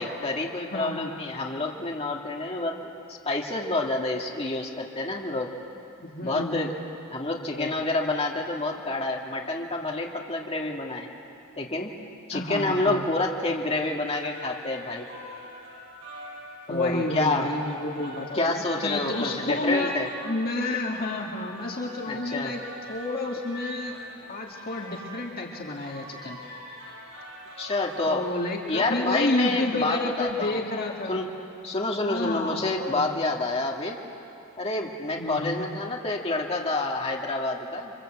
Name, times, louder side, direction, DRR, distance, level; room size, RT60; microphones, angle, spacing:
voice 1, 0.0-2.9 3.2-5.5 6.2-6.7 7.1-11.1 11.6-11.9 12.3-15.1 16.7-17.5 18.3-20.1 22.1-22.5 27.6-28.3 28.7-30.6 31.1-31.3 31.6-34.0 34.6-37.9, left 2 dB, 30° left, -1 dB, 2.3 m, -28 dB
voice 2, 0.7-1.1 6.0-6.7 7.6-7.8 12.3-13.0 16.7-20.0 20.2-22.6 22.9-24.0 24.3-26.4 28.1-31.2 32.0-33.3 35.2-35.6, left 2 dB, 45° left, 0 dB, 2.1 m, -30 dB
sound 1, 13.9-29.7, equal, 80° right, 6.8 m, -44 dB
28.5 x 24.5 x 8.0 m, 2.7 s
head